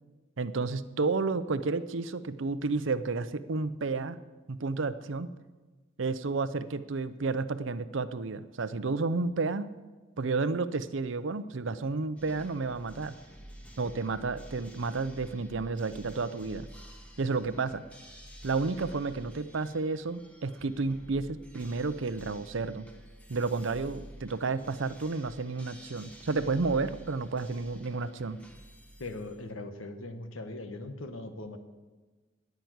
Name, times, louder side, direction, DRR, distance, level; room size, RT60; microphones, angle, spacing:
voice 1, 0.4-4.2 4.5-5.3 6.0-9.7 10.2-13.2 13.8-16.7 17.2-17.8 18.4-22.9 23.3-28.4, right 3 dB, 70° right, 13 dB, 0.6 m, -31 dB
sound 1, 12.2-29.5, equal, 5° left, 1.5 m, -50 dB
voice 2, 29.0-31.6, left 2 dB, 90° left, 7 dB, 1.3 m, -40 dB
10.5 x 10.5 x 8.0 m, 1.3 s
head